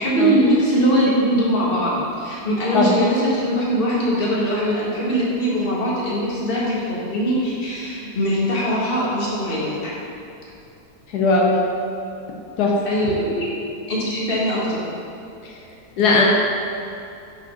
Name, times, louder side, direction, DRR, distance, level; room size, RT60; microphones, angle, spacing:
voice 1, 0.0-9.9 12.8-13.5 13.9-14.8, equal, 35° left, -6 dB, 1.7 m, -21 dB
voice 2, 11.1-11.6 12.6-12.8 15.4-15.5 16.0-16.2, left 3 dB, 85° left, -1 dB, 1.3 m, -18 dB
5.4 x 5.3 x 5.8 m, 2.7 s
omnidirectional pair, 1.7 m